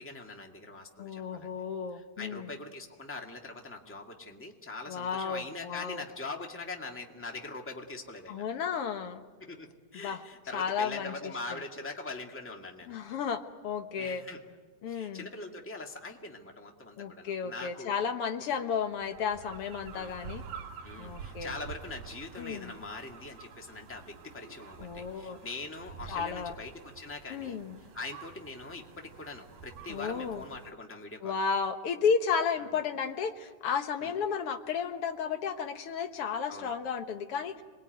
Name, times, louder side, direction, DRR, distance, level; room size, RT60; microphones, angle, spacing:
voice 1, 0.0-1.5 1.9-8.4 9.4-13.0 14.0-14.4 14.9-18.0 19.9-20.1 20.8-31.4 32.6-32.7 34.0-34.1 36.5-36.7, left 3 dB, 5° left, 2 dB, 1.3 m, -42 dB
voice 2, 1.0-2.5 4.9-6.0 8.3-9.2 10.0-10.2 10.5-11.1 11.5-11.6 12.9-14.2 14.8-15.3 17.0-20.4 21.0-21.6 22.4-22.7 24.8-25.4 26.1-26.6 27.3-27.8 29.9-30.4 31.2-37.6, left 6 dB, 55° left, 7 dB, 1.8 m, -33 dB
sound 1, 18.9-30.7, right 6 dB, 80° right, 3.5 m, -48 dB
26.5 x 21.0 x 9.3 m, 1.4 s
omnidirectional pair, 3.6 m